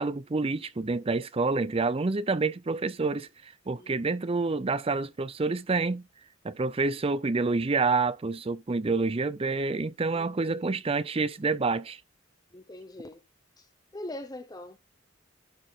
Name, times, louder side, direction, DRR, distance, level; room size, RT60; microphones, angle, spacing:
voice 1, 0.0-6.0 6.4-12.0, right 3 dB, 30° right, 0.5 m, -28 dB
voice 2, 3.8-4.2 10.1-10.6 12.5-13.2 13.6-13.7 13.9-14.8, left 1 dB, 20° left, 0.8 m, -42 dB
11.5 x 4.3 x 3.7 m
head